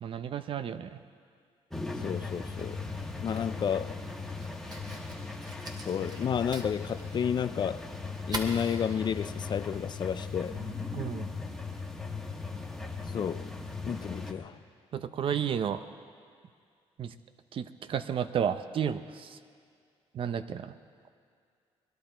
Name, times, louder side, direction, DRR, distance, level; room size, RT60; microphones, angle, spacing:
voice 1, 0.0-1.0 10.9-11.3 14.9-15.8 17.0-17.1 17.5-19.4 20.1-20.7, right 8 dB, 55° right, 0.7 m, -32 dB
sound 1, 1.7-14.3, left 4 dB, ahead, 1.3 m, -38 dB
Fire, 1.9-10.7, right 2 dB, 40° right, 1.5 m, -46 dB
voice 2, 2.0-2.8 3.2-4.0 5.9-7.9 8.3-10.6 13.1-13.5 13.9-14.6, left 8 dB, 45° left, 0.4 m, -31 dB
21.0 x 11.5 x 4.5 m
cardioid pair, 95°, 11 cm